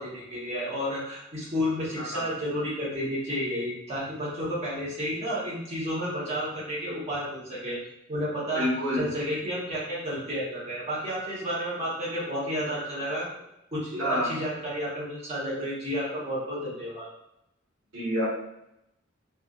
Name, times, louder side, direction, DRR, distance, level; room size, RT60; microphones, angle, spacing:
voice 1, 0.0-7.8 8.1-8.7 8.9-13.2 13.7-17.1, equal, 35° right, -8 dB, 1.2 m, -31 dB
voice 2, 8.5-9.0 14.0-14.3 17.9-18.3, equal, 90° right, -7 dB, 1.4 m, -27 dB
3.4 x 2.5 x 2.4 m, 0.83 s
head